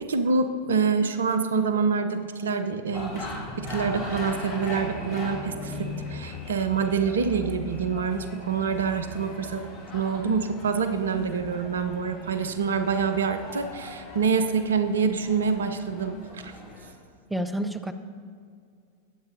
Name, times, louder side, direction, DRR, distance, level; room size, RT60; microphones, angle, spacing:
voice 1, 0.0-3.3 3.6-9.6 9.9-16.5, right 5 dB, 65° right, 10 dB, 0.6 m, -26 dB
sound 1, 2.9-16.9, left 2 dB, 45° left, 3.2 m, -39 dB
voice 2, 17.3-17.9, right 1 dB, 5° right, 9 dB, 0.6 m, -29 dB
21.0 x 8.1 x 2.7 m, 2.2 s
figure-of-eight pair, 90°, 0 cm